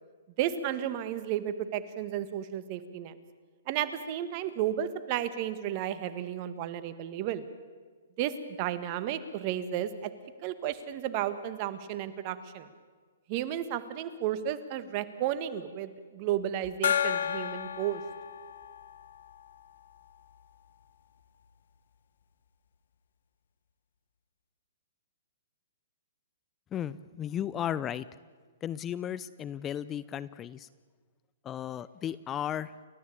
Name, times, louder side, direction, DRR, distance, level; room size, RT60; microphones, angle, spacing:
voice 1, 0.4-3.2 3.7-7.4 8.2-10.1 10.4-12.7 13.3-18.0, right 11 dB, 40° right, 12 dB, 1.8 m, -33 dB
Gong, 16.8-20.1, left 9 dB, 70° left, 1.1 m, -32 dB
voice 2, 26.7-28.0 28.6-30.7 31.4-32.7, left 10 dB, 20° left, 18 dB, 0.6 m, -35 dB
29.5 x 13.5 x 8.7 m, 1.5 s
hypercardioid pair, 135°, 0 cm